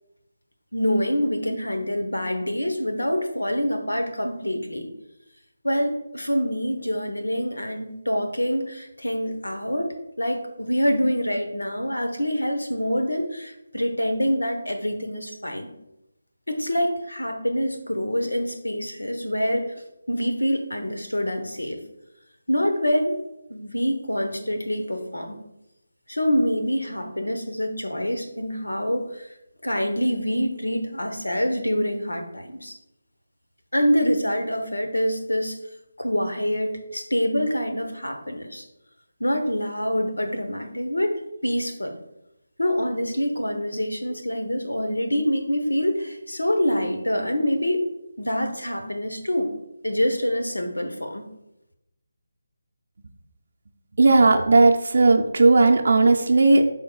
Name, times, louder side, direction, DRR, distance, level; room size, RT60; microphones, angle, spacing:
voice 1, 0.7-4.9 5.6-15.7 16.5-19.7 20.1-21.8 22.5-23.2 23.5-25.4 26.1-29.3 29.6-32.7 33.7-35.6 36.0-38.6 39.2-41.9 42.6-47.9 48.2-49.5 49.8-51.3, equal, 90° left, 5 dB, 1.0 m, -26 dB
voice 2, 54.0-56.7, right 3 dB, 60° right, 3 dB, 0.5 m, -16 dB
10.5 x 3.7 x 2.4 m, 0.88 s
figure-of-eight pair, 155°, 0 cm